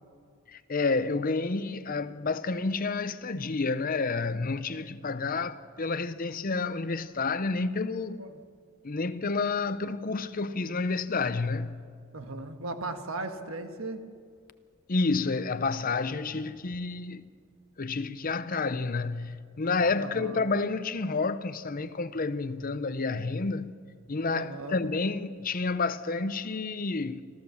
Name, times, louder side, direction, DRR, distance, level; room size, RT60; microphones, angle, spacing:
voice 1, 0.5-8.3 8.8-11.8 14.9-17.2 17.8-23.7 24.1-27.2, left 3 dB, 40° left, 0.7 m, -30 dB
voice 2, 12.1-14.1 20.0-20.4 24.3-24.8, right 2 dB, 75° right, 1.5 m, -37 dB
26.0 x 14.5 x 7.1 m
head